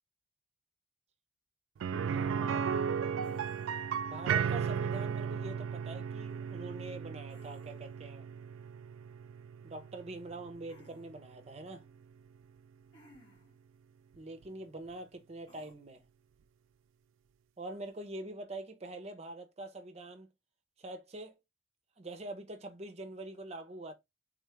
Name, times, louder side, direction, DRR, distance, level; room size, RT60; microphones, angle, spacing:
sound 1, 1.8-11.6 11.9-12.0 14.4-14.5, right 7 dB, 90° right, 0.3 m, -35 dB
voice 1, 2.0-2.8 4.1-8.3 9.6-11.9 14.2-16.0 17.6-20.3 20.8-21.4 22.0-23.9, right 2 dB, 30° right, 0.5 m, -45 dB
sound 2, 3.2-4.0 7.3-8.1 10.7-11.1 12.9-13.6 15.5-15.7, left 1 dB, 70° left, 1.5 m, -59 dB
3.6 x 2.3 x 3.1 m
head